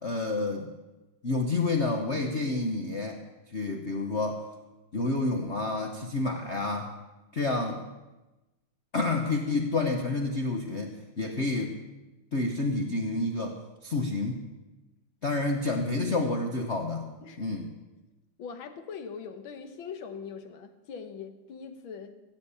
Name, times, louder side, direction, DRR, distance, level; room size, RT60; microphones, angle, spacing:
voice 1, 0.0-0.7 1.2-3.2 3.5-4.4 4.9-6.9 7.3-7.8 8.9-11.8 12.3-14.4 15.2-17.1 17.4-17.7, left 2 dB, 45° left, 3 dB, 1.0 m, -29 dB
voice 2, 18.4-22.2, left 6 dB, 70° left, 9 dB, 1.8 m, -41 dB
16.5 x 7.1 x 8.3 m, 1.1 s
omnidirectional pair, 2.4 m